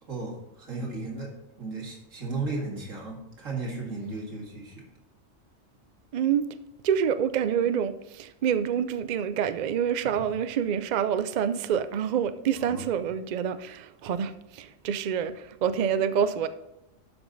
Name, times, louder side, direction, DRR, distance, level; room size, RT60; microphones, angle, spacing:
voice 1, 0.0-4.8 12.6-12.8, right 3 dB, 80° right, 2.4 m, -35 dB
voice 2, 6.1-6.5 6.8-16.5, right 8 dB, 65° right, 0.4 m, -27 dB
11.5 x 5.3 x 3.9 m
omnidirectional pair, 1.3 m